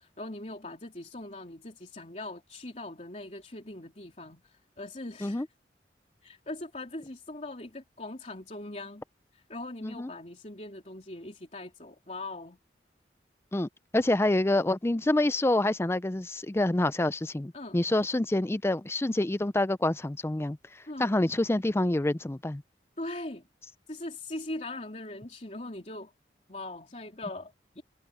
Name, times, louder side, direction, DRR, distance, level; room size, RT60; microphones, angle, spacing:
voice 1, 0.0-5.4 6.2-9.0 9.3-12.6 17.5-17.8 20.9-21.2 23.0-23.5 23.9-26.1 26.5-27.8, left 2 dB, 40° left, 3.3 m, -41 dB
voice 2, 13.5-20.6 21.0-22.6, left 1 dB, 15° left, 0.4 m, -27 dB
head